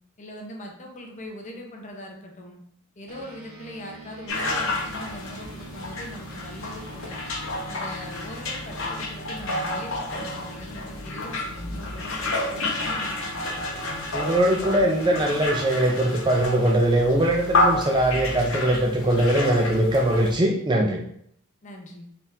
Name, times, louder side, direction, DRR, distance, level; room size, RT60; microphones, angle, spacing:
voice 1, 0.2-2.6 3.0-7.2 7.7-13.6 21.6-22.1, left 1 dB, 35° left, 0 dB, 0.8 m, -41 dB
sound 1, 3.1-12.8, right 2 dB, 45° right, 0.7 m, -45 dB
sound 2, 4.3-20.4, left 2 dB, 60° left, 0.8 m, -30 dB
voice 2, 14.1-21.0, right 1 dB, 20° right, 1 dB, 0.4 m, -21 dB
4.2 x 3.5 x 2.7 m, 0.69 s
head